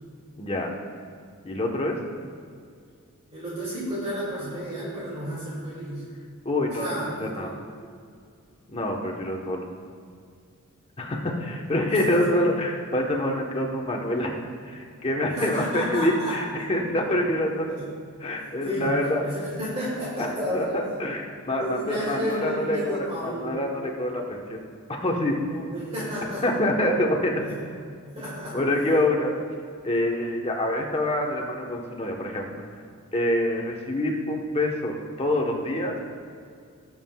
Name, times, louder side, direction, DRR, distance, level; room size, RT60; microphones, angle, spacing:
voice 1, 0.4-0.7 1.4-2.0 6.4-7.5 8.7-9.7 11.0-17.7 18.2-19.2 20.2-24.6 24.9-25.4 26.4-27.4 28.5-29.3 29.8-32.6 33.1-36.0, left 1 dB, 30° left, 0 dB, 1.1 m, -26 dB
voice 2, 3.3-6.0 6.8-7.6 11.9-12.3 15.4-16.4 17.7-17.8 18.6-18.9 19.2-21.0 21.6-23.6 25.5-26.4 27.4-27.6 28.1-28.6, equal, 30° right, -8 dB, 2.3 m, -31 dB
18.5 x 7.5 x 2.3 m, 2.2 s
head